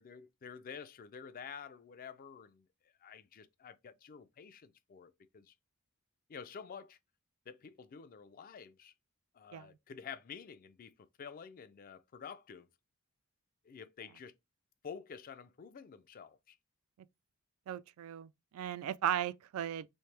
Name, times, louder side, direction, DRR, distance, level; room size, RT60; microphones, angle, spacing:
voice 1, 0.0-2.7 3.0-5.5 6.3-7.0 7.5-8.9 9.3-12.7 13.6-14.3 14.8-16.6, left 6 dB, 40° left, 0.4 m, -49 dB
voice 2, 17.7-19.9, right 10 dB, 75° right, 0.3 m, -36 dB
3.1 x 2.7 x 3.2 m
head